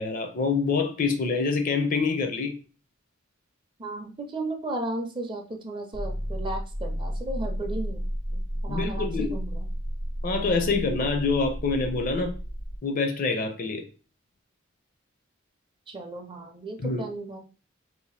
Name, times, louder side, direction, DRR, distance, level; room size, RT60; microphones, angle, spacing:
voice 1, 0.0-2.6 8.7-9.3 10.2-12.3 12.8-13.8 16.8-17.0, left 4 dB, 45° left, 6 dB, 0.5 m, -26 dB
voice 2, 3.8-8.0 8.3-9.7 15.9-17.4, right 2 dB, 25° right, 3 dB, 0.5 m, -35 dB
sound 1, 5.9-12.8, equal, 90° left, 1.1 m, -32 dB
2.7 x 2.1 x 3.1 m, 0.36 s
head